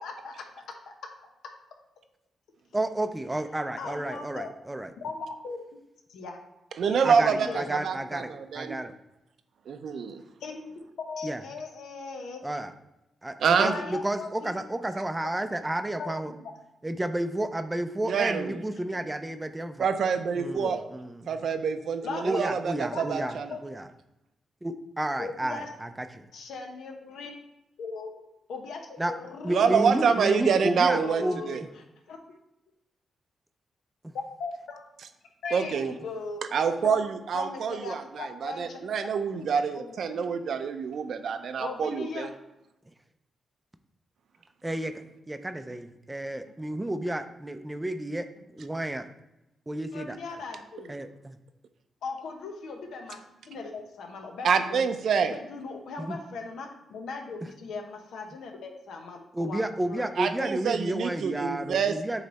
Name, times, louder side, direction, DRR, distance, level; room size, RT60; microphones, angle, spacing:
voice 1, 0.0-0.8 3.8-4.5 5.0-5.6 6.1-6.4 6.9-7.8 10.4-10.6 11.1-12.4 13.6-14.5 16.0-16.1 20.6-20.7 22.0-22.2 22.9-23.6 25.2-25.7 26.3-27.3 27.8-28.2 28.5-32.2 34.4-34.8 35.4-36.4 36.8-37.0 37.3-38.9 39.3-39.4 39.7-40.3 41.6-42.3 49.9-51.0 52.0-54.8 55.2-59.6 59.9-60.1, left 4 dB, 85° left, 3 dB, 1.0 m, -38 dB
voice 2, 2.7-4.9 7.0-8.9 11.2-11.4 12.4-12.7 13.2-16.3 16.8-19.9 20.4-21.4 22.2-23.3 23.6-23.9 24.6-26.3 29.0-29.1 29.4-31.4 44.6-44.9 45.3-48.3 48.5-49.1 49.7-50.2 50.9-51.4 56.0-56.2 59.3-62.2, right 1 dB, 15° right, 8 dB, 0.5 m, -31 dB
voice 3, 6.8-8.8 9.7-10.2 13.4-13.7 18.0-18.6 19.8-20.8 21.3-23.5 29.5-31.6 35.5-35.9 36.5-38.0 38.4-42.3 54.4-55.3 60.2-62.0, right 6 dB, 70° right, 8 dB, 0.6 m, -26 dB
8.0 x 3.2 x 4.1 m, 0.90 s
cardioid pair, 95°, 0 cm